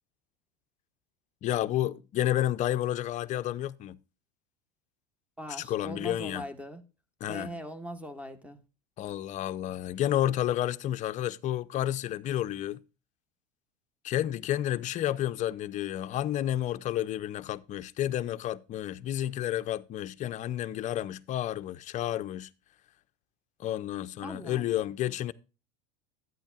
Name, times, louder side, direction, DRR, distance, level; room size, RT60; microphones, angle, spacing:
voice 1, 1.4-4.0 5.5-6.5 7.2-7.5 9.0-12.8 14.0-22.5 23.6-25.3, left 12 dB, 35° left, 0.5 m, -31 dB
voice 2, 5.4-6.8 7.3-8.6 24.2-24.9, equal, 5° right, 1.2 m, -41 dB
11.5 x 9.2 x 2.4 m
supercardioid pair, 115°, 21 cm